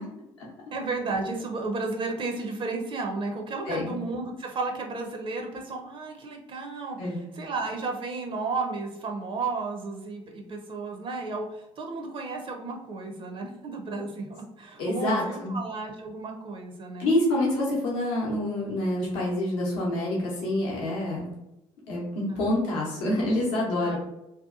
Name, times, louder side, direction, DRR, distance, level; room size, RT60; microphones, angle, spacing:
voice 1, 0.7-17.1 22.3-22.4 23.8-24.0, right 3 dB, 35° right, 2 dB, 0.5 m, -33 dB
voice 2, 7.0-7.3 14.8-15.6 17.0-21.3 21.9-24.0, left 1 dB, 70° left, -4 dB, 0.7 m, -27 dB
2.7 x 2.2 x 2.3 m, 0.89 s
figure-of-eight pair, 50°, 15 cm